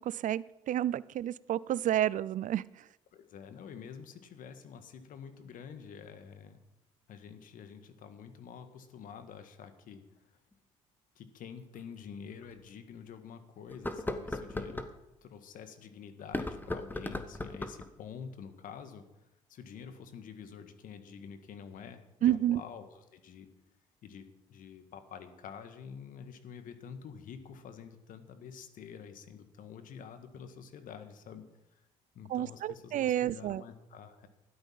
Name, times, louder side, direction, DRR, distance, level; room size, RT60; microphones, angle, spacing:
voice 1, 0.0-2.6 22.2-22.6 32.3-33.6, right 12 dB, 60° right, 21 dB, 0.5 m, -30 dB
voice 2, 3.1-6.6 7.1-10.4 11.1-14.9 15.2-19.1 19.5-23.5 24.0-31.4 32.1-34.3, left 7 dB, 65° left, 9 dB, 1.7 m, -48 dB
sound 1, 10.5-10.6 11.8-11.9 12.4-12.5 13.7-14.9 16.2-17.9, left 2 dB, 10° left, 1.4 m, -37 dB
13.0 x 11.5 x 5.7 m, 0.92 s
hypercardioid pair, 60°, 15 cm